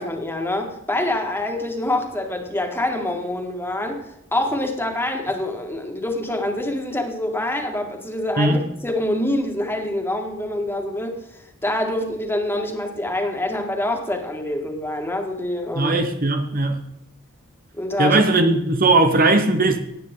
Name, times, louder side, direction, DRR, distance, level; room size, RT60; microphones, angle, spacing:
voice 1, 0.0-11.2 11.6-16.0 17.7-18.2 18.9-19.1, left 1 dB, 10° left, 2.1 m, -26 dB
voice 2, 15.7-16.8 18.0-19.8, right 2 dB, 45° right, 1.1 m, -18 dB
18.5 x 9.0 x 3.8 m
head